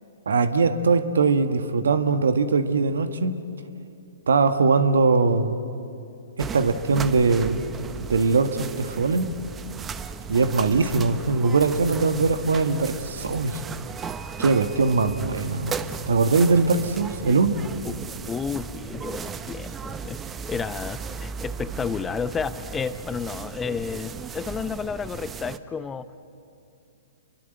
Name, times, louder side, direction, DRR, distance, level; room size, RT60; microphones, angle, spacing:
voice 1, 0.2-3.4 4.3-5.6 6.4-7.6 8.1-9.3 10.3-13.6 14.4-15.7 16.1-17.6, right 4 dB, 80° right, 9 dB, 1.7 m, -21 dB
sound 1, 6.4-25.6, right 6 dB, 15° right, 0.9 m, -36 dB
voice 2, 18.3-20.2 20.5-26.1, left 6 dB, 15° left, 13 dB, 0.8 m, -31 dB
29.0 x 23.0 x 8.1 m, 2.6 s
hypercardioid pair, 125°, 0 cm